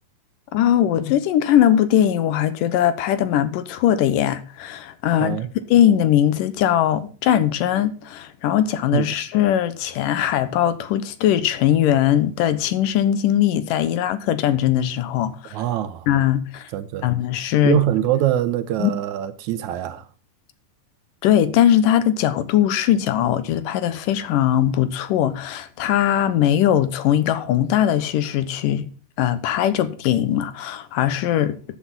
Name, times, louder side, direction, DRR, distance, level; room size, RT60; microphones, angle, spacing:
voice 1, 0.5-5.4 5.7-15.5 16.1-16.7 17.0-17.8 18.8-18.9 21.2-28.9 29.2-31.6, left 11 dB, 85° left, 2.7 m, -20 dB
voice 2, 5.2-5.5 8.9-9.1 15.5-16.1 16.7-17.1 17.6-20.1, right 12 dB, 75° right, 2.0 m, -23 dB
13.5 x 8.5 x 3.7 m
omnidirectional pair, 3.7 m